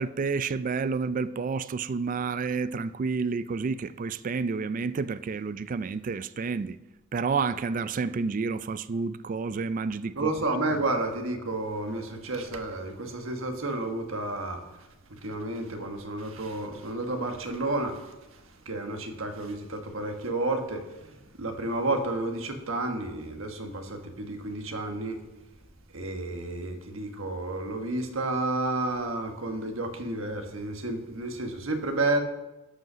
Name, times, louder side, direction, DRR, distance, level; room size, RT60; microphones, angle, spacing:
voice 1, 0.0-6.8 7.1-10.3, right 4 dB, 40° right, 0.3 m, -30 dB
voice 2, 10.1-14.6 15.1-25.2 25.9-32.2, right 2 dB, 80° right, 1.4 m, -31 dB
13.0 x 5.5 x 6.1 m
head